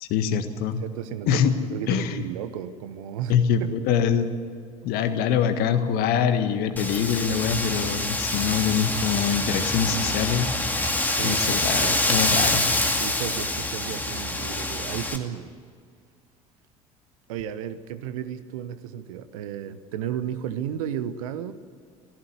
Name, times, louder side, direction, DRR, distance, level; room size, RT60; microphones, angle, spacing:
voice 1, 0.0-0.8 1.3-1.5 1.9-2.2 3.3-4.3 4.8-10.5 11.2-12.7, left 8 dB, 55° left, 9 dB, 1.6 m, -24 dB
voice 2, 0.8-3.7 11.0-11.5 11.8-12.0 12.9-15.5 17.3-21.5, right 9 dB, 65° right, 12 dB, 1.1 m, -33 dB
Wind, 6.8-15.2, left 2 dB, 10° left, 2.3 m, -26 dB
17.0 x 15.5 x 9.8 m, 2.2 s
figure-of-eight pair, 60°, 19 cm